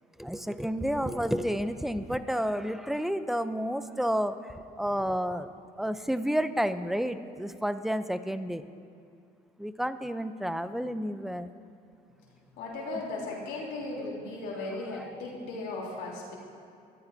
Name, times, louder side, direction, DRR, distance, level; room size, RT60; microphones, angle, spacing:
voice 1, 0.2-5.5 5.8-8.7 9.6-11.5 14.9-15.0, equal, ahead, 11 dB, 0.6 m, -30 dB
voice 2, 12.6-16.3, left 2 dB, 85° left, -3 dB, 3.4 m, -36 dB
23.0 x 14.0 x 2.7 m, 2.5 s
cardioid pair, 110°, 17 cm